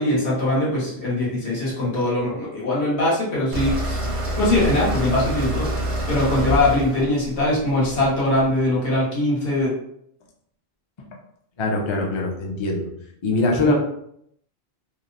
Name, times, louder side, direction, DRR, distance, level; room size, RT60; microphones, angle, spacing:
voice 1, 0.0-4.0 4.4-5.7 6.1-9.7 13.7-13.8, left 1 dB, 90° left, -6 dB, 1.2 m, -21 dB
sound 1, 3.5-8.5, right 1 dB, 55° right, 0.3 m, -27 dB
voice 2, 11.6-12.9 13.2-13.7, left 2 dB, 45° left, 0 dB, 0.4 m, -22 dB
2.9 x 2.0 x 2.4 m, 0.71 s
omnidirectional pair, 1.1 m